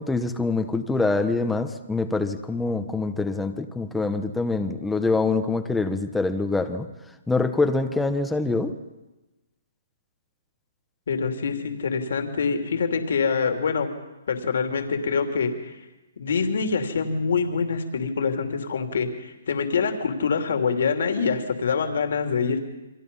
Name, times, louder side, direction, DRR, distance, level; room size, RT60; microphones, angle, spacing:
voice 1, 0.0-6.9 7.3-8.8, left 3 dB, 5° left, 7 dB, 1.2 m, -25 dB
voice 2, 11.1-13.9 14.3-15.7 16.2-22.6, left 5 dB, 70° left, 5 dB, 3.1 m, -25 dB
29.0 x 23.5 x 5.6 m, 1.1 s
hypercardioid pair, 150°, 0 cm